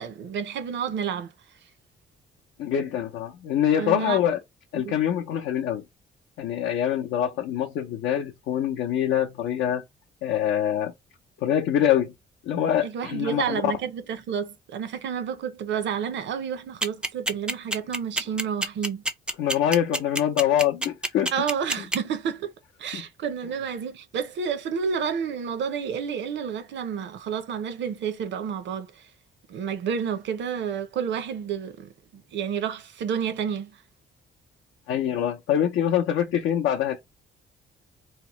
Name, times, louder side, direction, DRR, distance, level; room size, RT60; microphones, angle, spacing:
voice 1, 0.0-1.3 3.8-4.2 4.8-5.0 12.8-19.0 21.3-22.5 22.8-29.1 29.5-33.8, right 7 dB, 65° right, 0.6 m, -30 dB
voice 2, 2.6-4.4 4.7-5.8 6.4-9.8 10.2-10.9 11.4-12.1 12.4-13.7 19.4-21.3 22.9-23.0 34.9-37.0, left 10 dB, 80° left, 0.6 m, -24 dB
sound 1, 16.8-22.0, right 1 dB, 5° right, 0.4 m, -26 dB
2.8 x 2.0 x 2.9 m
cardioid pair, 90°, 20 cm